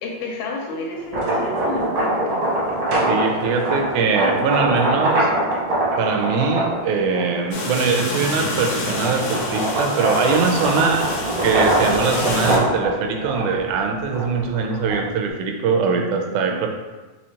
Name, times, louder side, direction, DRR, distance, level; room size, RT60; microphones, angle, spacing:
voice 1, 0.0-2.4 16.3-16.6, left 2 dB, 85° left, -1 dB, 2.2 m, -30 dB
sound 1, 1.0-7.6 8.1-15.3, right 1 dB, 70° right, 1.1 m, -23 dB
voice 2, 3.1-5.3 6.0-11.2 11.4-16.7, right 5 dB, 85° right, 3 dB, 2.0 m, -22 dB
sound 2, 7.5-12.6, left 2 dB, 70° left, 1.5 m, -28 dB
5.5 x 2.9 x 2.8 m, 1.2 s
omnidirectional pair, 3.4 m